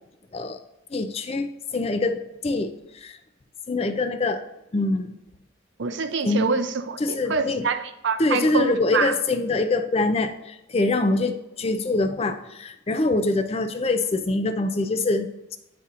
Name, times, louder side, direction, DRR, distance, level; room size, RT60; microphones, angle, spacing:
voice 1, 0.9-3.2 3.7-4.4 4.7-5.2 6.2-6.5 7.0-7.7 8.2-15.6, left 2 dB, 30° left, 0.4 m, -24 dB
voice 2, 5.8-9.2, right 4 dB, 60° right, 0.5 m, -26 dB
9.5 x 4.2 x 2.5 m
head